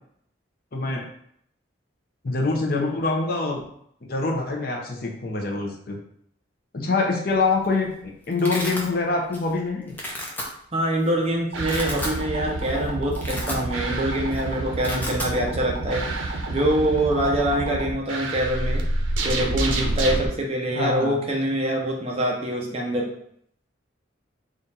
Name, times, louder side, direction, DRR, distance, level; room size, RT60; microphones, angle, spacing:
voice 1, 0.7-1.1 2.2-3.6 4.1-6.0 6.7-9.9 20.7-21.2, left 3 dB, 50° left, 0 dB, 0.7 m, -25 dB
Domestic sounds home sounds, 7.4-7.7 8.0-8.9 9.3-9.6 9.9-10.4 11.1-11.2 11.5-12.2 12.6-12.7 13.0-14.0 14.2-14.4 14.7-15.3, left 1 dB, 10° left, 0.7 m, -32 dB
voice 2, 10.7-18.8 19.2-23.1, right 1 dB, 30° right, 0 dB, 0.7 m, -25 dB
sound 1, 11.5-20.3, right 2 dB, 85° right, 0.7 m, -28 dB
3.8 x 2.5 x 4.1 m, 0.68 s
head